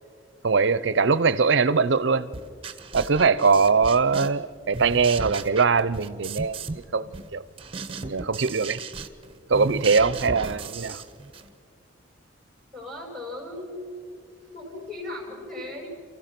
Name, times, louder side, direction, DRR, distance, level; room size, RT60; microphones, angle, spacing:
voice 1, 0.4-2.3 2.9-6.6 6.9-7.4 8.0-8.8 9.5-11.0, right 5 dB, 60° right, 0.6 m, -22 dB
sound 1, 2.3-4.5 4.7-6.9 7.1-11.5, right 4 dB, 25° right, 0.9 m, -36 dB
voice 2, 12.7-14.2 14.5-15.9, left 1 dB, ahead, 5.2 m, -37 dB
30.0 x 15.5 x 5.9 m
head